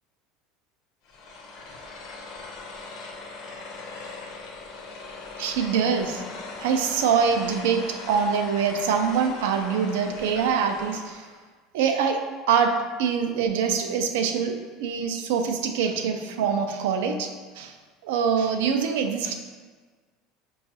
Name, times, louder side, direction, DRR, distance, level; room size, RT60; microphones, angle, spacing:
sound 1, 1.0-11.4, left 3 dB, 50° left, 0.5 m, -40 dB
voice 1, 5.4-6.2 6.6-11.3 11.7-12.2 12.5-17.7 18.0-19.3, right 6 dB, 90° right, 6 dB, 0.3 m, -24 dB
4.8 x 2.3 x 2.7 m, 1.4 s
cardioid pair, 165°, 0 cm